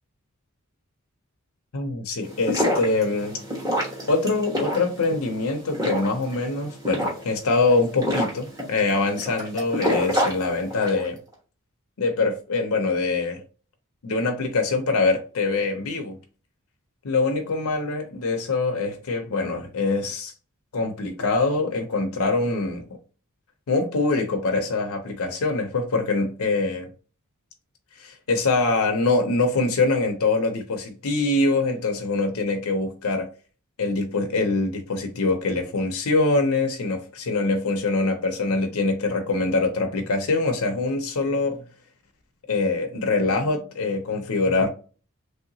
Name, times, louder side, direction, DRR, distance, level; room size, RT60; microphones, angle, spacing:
voice 1, 1.7-3.4 4.1-11.2 12.0-13.4 14.0-16.2 17.0-20.3 20.7-22.8 23.7-26.9 28.0-33.3 33.8-41.7 42.5-44.7, left 3 dB, 75° left, 0.6 m, -24 dB
sound 1, 2.2-11.1, equal, 15° right, 1.1 m, -28 dB
3.3 x 2.8 x 2.7 m
head